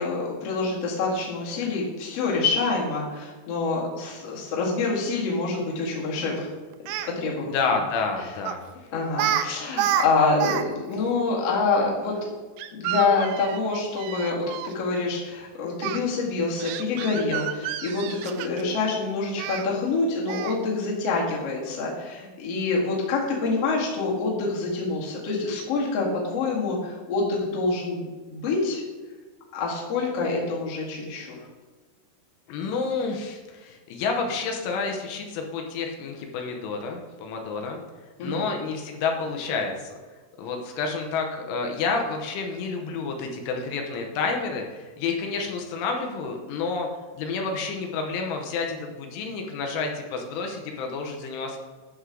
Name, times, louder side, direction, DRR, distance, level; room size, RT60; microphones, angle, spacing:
voice 1, 0.0-6.5 7.2-7.5 8.9-12.3 12.7-28.8 29.5-31.3 38.2-38.5, left 3 dB, 50° left, -4 dB, 2.0 m, -26 dB
Speech, 6.7-7.1 8.5-8.7 9.1-9.5 9.7-10.6 10.9-11.0 12.6-14.7 15.8-16.0 16.6-18.7 19.4-19.6 20.3-20.6, right 11 dB, 85° right, 3.1 m, -29 dB
voice 2, 7.4-8.6 32.5-37.8 38.2-40.0 40.4-46.9 47.1-51.6, left 4 dB, 80° left, 2 dB, 3.3 m, -29 dB
11.0 x 7.3 x 3.8 m, 1.3 s
omnidirectional pair, 5.7 m